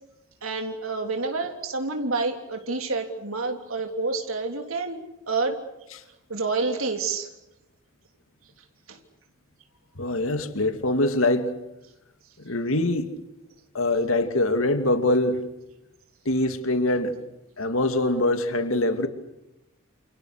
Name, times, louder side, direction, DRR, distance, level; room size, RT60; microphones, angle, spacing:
voice 1, 0.4-5.0 5.3-5.6 6.3-7.3 8.9-9.0, right 3 dB, 85° right, 3.4 m, -28 dB
voice 2, 10.0-11.5 12.4-13.1 13.7-15.5 16.3-17.1 17.6-19.1, left 2 dB, 75° left, 2.6 m, -23 dB
29.5 x 28.5 x 6.6 m
head